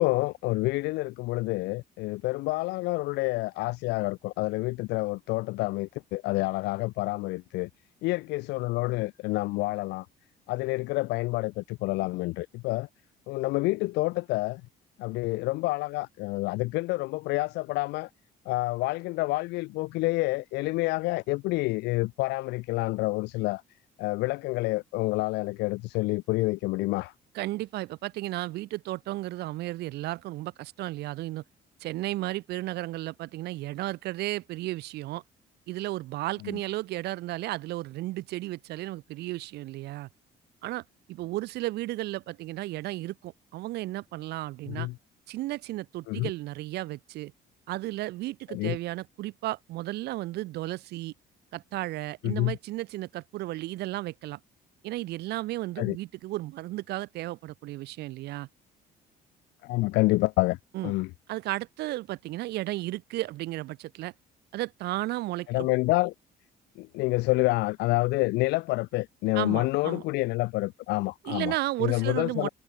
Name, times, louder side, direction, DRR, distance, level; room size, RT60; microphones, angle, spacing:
voice 1, 0.0-7.7 8.0-10.1 10.5-12.9 13.3-14.6 15.0-18.1 18.5-23.6 24.0-27.1 36.4-36.6 44.7-44.9 46.1-46.3 48.5-48.8 52.2-52.6 55.8-56.0 59.6-60.6 60.8-61.1 65.5-66.1 66.8-71.5 71.8-72.5, left 21 dB, 85° left, 0.5 m, -28 dB
voice 2, 27.3-31.4 31.8-35.2 35.7-40.1 40.6-40.8 41.1-44.9 45.3-47.3 47.7-51.1 51.5-54.4 54.8-58.5 60.7-60.9 61.3-64.1 64.5-65.7 69.3-70.0 71.2-72.5, right 17 dB, 80° right, 1.0 m, -34 dB
cardioid pair, 110°, 17 cm